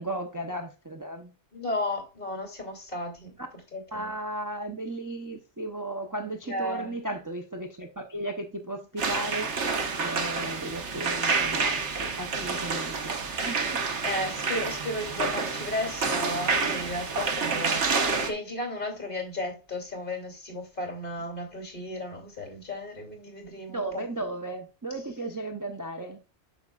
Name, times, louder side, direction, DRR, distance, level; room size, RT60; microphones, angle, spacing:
voice 1, 0.0-1.3 3.9-9.5 10.0-13.2 13.4-13.9 23.7-26.2, right 1 dB, 20° right, 0.7 m, -35 dB
voice 2, 1.5-3.4 3.7-4.1 6.4-6.9 14.0-24.0, left 1 dB, 45° left, 3.0 m, -34 dB
sound 1, 9.0-18.3, right 4 dB, 70° right, 1.3 m, -28 dB
8.6 x 6.5 x 2.4 m
omnidirectional pair, 1.2 m